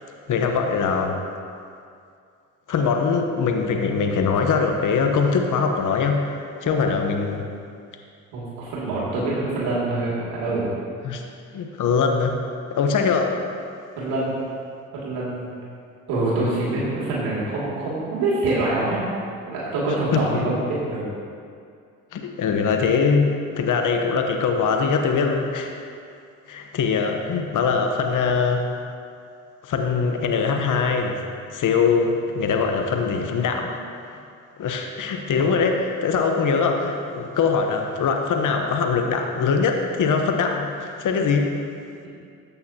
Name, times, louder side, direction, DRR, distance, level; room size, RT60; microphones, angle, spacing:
voice 1, 0.3-1.2 2.7-6.3 6.6-7.4 11.0-11.2 11.5-12.4 12.7-13.4 20.1-20.4 22.1-25.8 26.5-28.7 29.6-31.2 31.5-33.8 34.1-34.2 34.6-41.6, left 5 dB, 55° left, 3 dB, 1.1 m, -22 dB
voice 2, 8.3-10.7 14.0-14.3 14.9-15.5 16.1-19.0 19.5-21.0 35.3-35.5, right 2 dB, 80° right, -7 dB, 2.6 m, -25 dB
13.5 x 8.3 x 2.9 m, 2.3 s
hypercardioid pair, 55°, 37 cm